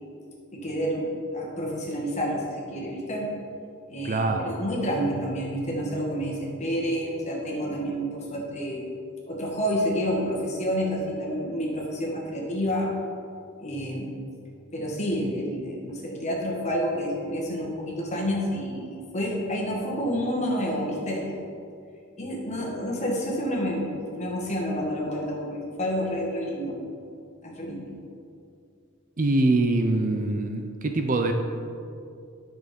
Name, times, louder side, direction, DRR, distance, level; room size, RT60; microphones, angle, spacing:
voice 1, 0.5-1.1 1.3-3.3 3.9-8.9 9.3-12.9 13.6-14.1 14.7-21.3 22.2-26.7 27.4-27.9, equal, 30° left, -2 dB, 1.8 m, -29 dB
voice 2, 4.0-4.5 29.2-31.3, right 2 dB, 40° right, 4 dB, 0.6 m, -24 dB
9.8 x 6.4 x 5.2 m, 2.4 s
head